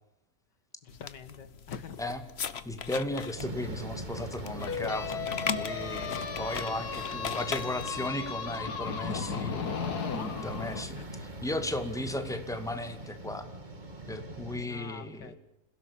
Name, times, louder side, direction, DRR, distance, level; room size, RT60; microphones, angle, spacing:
voice 1, 0.8-2.0 11.0-11.2 14.7-15.4, left 7 dB, 80° left, 13 dB, 2.1 m, -45 dB
sound 1, 0.9-8.1, left 6 dB, 45° left, 1.1 m, -39 dB
voice 2, 2.7-9.7 10.1-13.5 14.1-15.4, left 1 dB, ahead, 8 dB, 2.0 m, -36 dB
sound 2, 3.4-14.7, right 2 dB, 25° right, 2.3 m, -42 dB
sound 3, 4.6-10.8, left 6 dB, 65° left, 2.1 m, -36 dB
27.5 x 17.0 x 8.5 m, 0.84 s
omnidirectional pair, 1.8 m